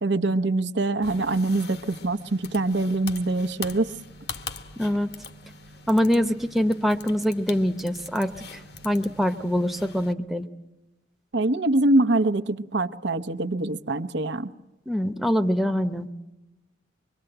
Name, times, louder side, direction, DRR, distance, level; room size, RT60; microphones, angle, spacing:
voice 1, 0.0-3.9 11.3-14.5, right 2 dB, 70° right, 0.9 m, -24 dB
sound 1, 1.0-10.1, left 5 dB, 60° left, 1.2 m, -42 dB
voice 2, 4.8-5.1 5.9-8.6 8.8-10.5 14.9-16.1, equal, ahead, 0.8 m, -24 dB
25.0 x 23.5 x 7.9 m
head